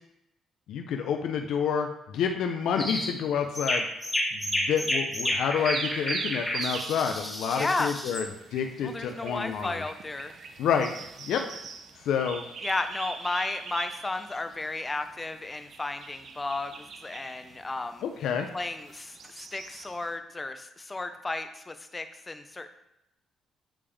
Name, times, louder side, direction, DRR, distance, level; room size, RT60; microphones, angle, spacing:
voice 1, 0.7-3.8 4.3-8.3 8.5-9.8 10.6-10.9 11.2-11.4 12.1-12.4 18.0-18.5, left 7 dB, 80° left, 4 dB, 0.5 m, -28 dB
sound 1, 2.8-3.1 3.5-8.3, left 1 dB, 5° left, 1.4 m, -31 dB
sound 2, 5.6-20.1, right 5 dB, 60° right, 0.6 m, -41 dB
voice 2, 7.5-7.9 8.8-10.3 12.6-18.0 18.5-22.7, left 2 dB, 20° left, 9 dB, 0.5 m, -33 dB
8.6 x 3.5 x 3.4 m, 0.85 s
cardioid pair, 90°, 0 cm